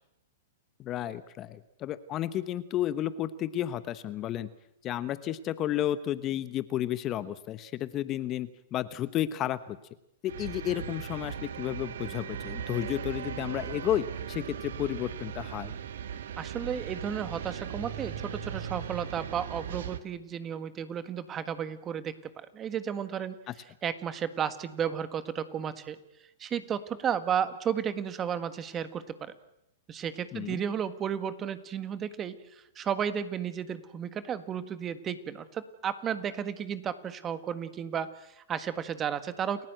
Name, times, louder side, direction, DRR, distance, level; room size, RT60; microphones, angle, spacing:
voice 1, 0.8-4.5 4.8-9.8 10.2-15.7 30.3-30.6, left 12 dB, 30° left, 14 dB, 1.1 m, -32 dB
sound 1, 10.3-20.0, right 8 dB, 70° right, 1.6 m, -38 dB
voice 2, 16.4-23.4 23.8-26.0 26.4-29.3 29.9-39.6, right 8 dB, 25° right, 12 dB, 1.7 m, -33 dB
29.0 x 15.5 x 7.9 m, 0.82 s
hypercardioid pair, 125°, 0 cm